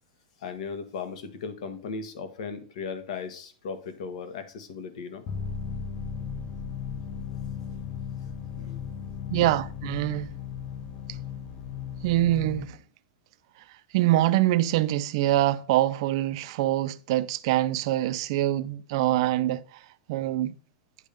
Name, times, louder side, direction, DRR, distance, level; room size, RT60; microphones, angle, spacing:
voice 1, 0.4-5.2 8.2-8.8, left 5 dB, 60° left, 1.3 m, -37 dB
sound 1, 5.3-12.6, left 7 dB, 25° left, 0.8 m, -36 dB
voice 2, 9.3-10.3 12.0-12.8 13.9-19.8 20.1-20.5, right 14 dB, 45° right, 0.5 m, -24 dB
10.0 x 3.6 x 5.1 m
supercardioid pair, 175°, 4 cm